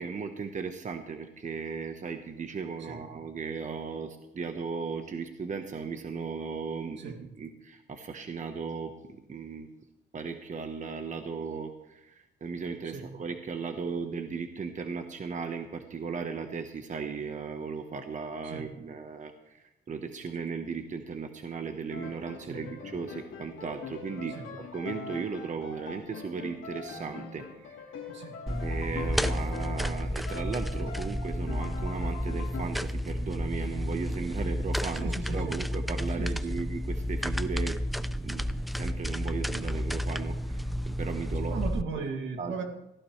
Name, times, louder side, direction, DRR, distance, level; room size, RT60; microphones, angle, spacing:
voice 1, 0.0-9.7 10.1-27.8 28.6-37.8 38.2-38.5 38.8-41.6 42.4-42.5, right 5 dB, 40° right, 6 dB, 1.1 m, -36 dB
voice 2, 12.8-13.2 18.4-18.8 22.4-22.7 24.4-24.5 28.1-28.4 35.0-35.6 36.2-36.6 41.4-42.6, right 5 dB, 70° right, 4 dB, 2.3 m, -38 dB
Piano, 21.9-30.0 30.3-32.6, left 5 dB, 75° left, 2.3 m, -43 dB
sound 1, 28.5-41.8, equal, ahead, 0.5 m, -31 dB
17.5 x 15.5 x 3.2 m, 0.89 s
cardioid pair, 90°, 20 cm